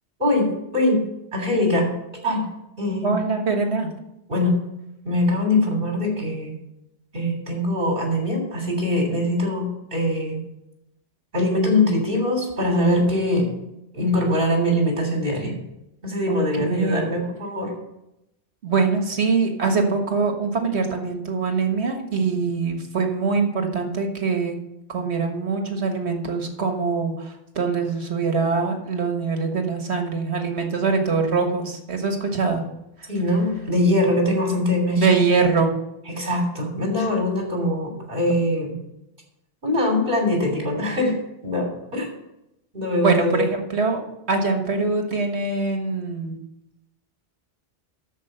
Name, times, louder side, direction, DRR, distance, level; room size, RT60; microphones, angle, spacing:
voice 1, 0.2-1.0 1.3-1.9 2.2-2.5 2.8-3.1 4.3-4.6 5.0-6.5 7.1-10.4 11.3-13.5 13.9-15.6 16.0-17.7 33.1-35.2 36.1-38.8 39.6-41.2 41.4-42.1 42.7-43.5, left 1 dB, 55° right, 1 dB, 3.5 m, -22 dB
voice 2, 3.0-3.9 16.3-17.1 18.6-24.6 24.9-32.6 33.0-33.1 35.0-35.7 43.0-44.0 44.3-46.4, right 4 dB, 75° right, 4 dB, 1.7 m, -23 dB
13.0 x 5.0 x 6.7 m, 0.87 s
omnidirectional pair, 1.1 m